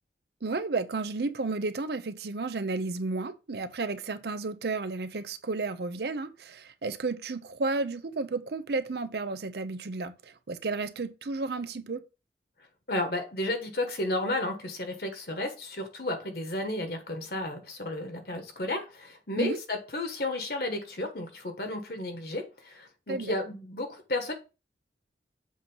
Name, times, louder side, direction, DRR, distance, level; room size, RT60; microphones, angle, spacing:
voice 1, 0.4-12.0 19.4-19.6 23.1-23.3, right 3 dB, 65° right, 0.6 m, -32 dB
voice 2, 12.9-24.3, left 1 dB, 55° left, 1.4 m, -33 dB
7.4 x 2.9 x 5.5 m
head